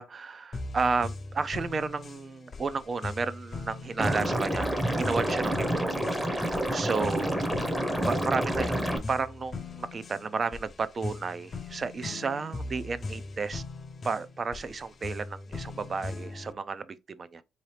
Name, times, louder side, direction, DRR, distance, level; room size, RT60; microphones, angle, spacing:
voice 1, 0.0-8.8 9.1-13.6 14.0-17.4, right 4 dB, 40° right, 0.5 m, -32 dB
sound 1, 0.5-16.5, left 3 dB, 40° left, 0.5 m, -39 dB
Liquid, 4.0-9.0, right 1 dB, 5° right, 0.8 m, -28 dB
3.8 x 2.9 x 3.2 m
cardioid pair, 90°, 0 cm